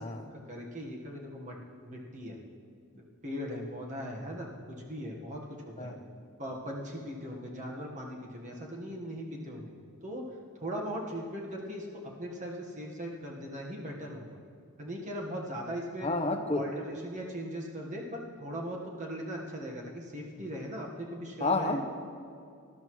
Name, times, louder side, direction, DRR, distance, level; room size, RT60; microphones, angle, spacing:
voice 1, 0.0-1.5 1.8-2.4 3.2-5.9 6.4-9.7 10.0-10.2 10.6-11.9 12.2-14.4 14.8-16.1 16.5-21.8, equal, 35° right, -1 dB, 1.4 m, -39 dB
voice 2, 16.0-16.6 21.4-21.8, left 2 dB, 25° left, 5 dB, 0.9 m, -29 dB
20.0 x 12.0 x 3.1 m, 2.3 s
head